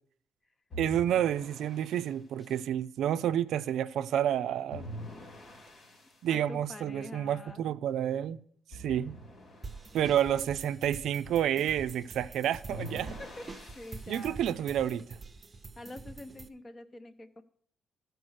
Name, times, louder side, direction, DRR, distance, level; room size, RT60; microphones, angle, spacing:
sound 1, 0.7-2.1 4.7-6.2 8.7-10.1 12.7-14.3, left 1 dB, 60° left, 2.4 m, -45 dB
voice 1, 0.8-4.9 6.2-8.4 8.7-9.2 9.9-13.2 14.1-15.2, right 10 dB, 75° right, 0.4 m, -29 dB
voice 2, 6.3-7.6 13.2-14.7 15.8-17.4, left 1 dB, 30° left, 0.9 m, -46 dB
sound 2, 9.6-16.5, right 3 dB, 30° right, 0.7 m, -46 dB
14.0 x 4.6 x 6.4 m
cardioid pair, 90°, 0 cm